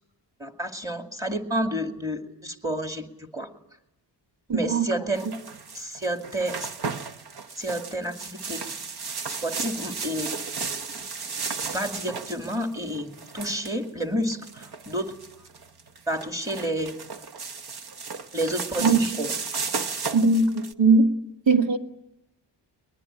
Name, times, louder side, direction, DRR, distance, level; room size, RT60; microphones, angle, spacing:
voice 1, 0.4-3.5 4.5-5.3 5.7-6.7 7.6-8.6 9.3-10.3 11.6-15.1 16.1-16.9 18.3-19.3, right 1 dB, 10° right, 5 dB, 2.3 m, -30 dB
voice 2, 4.5-4.9 18.8-19.1 20.1-21.1 21.5-21.8, right 3 dB, 85° right, 5 dB, 2.3 m, -20 dB
sound 1, 5.1-20.7, right 5 dB, 60° right, 1.2 m, -34 dB
22.5 x 21.5 x 9.9 m, 0.85 s
wide cardioid pair, 150°, 43 cm